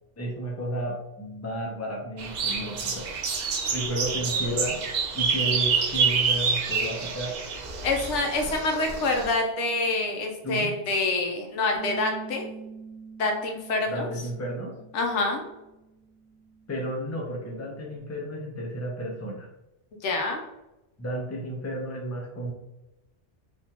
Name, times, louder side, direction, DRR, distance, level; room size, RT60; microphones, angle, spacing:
voice 1, 0.2-3.3 3.7-4.8 5.1-7.4 10.4-10.7 13.9-14.8 16.7-19.5 21.0-22.5, right 1 dB, 20° left, -1 dB, 0.5 m, -32 dB
sound 1, 2.2-9.3, right 5 dB, 55° right, 0.5 m, -27 dB
voice 2, 7.8-12.5 13.2-14.1 14.9-15.4 20.0-20.4, left 2 dB, 85° left, 2 dB, 1.0 m, -26 dB
Bass guitar, 11.7-18.0, right 6 dB, 75° right, 1.0 m, -46 dB
3.5 x 2.4 x 2.8 m, 0.93 s
omnidirectional pair, 1.2 m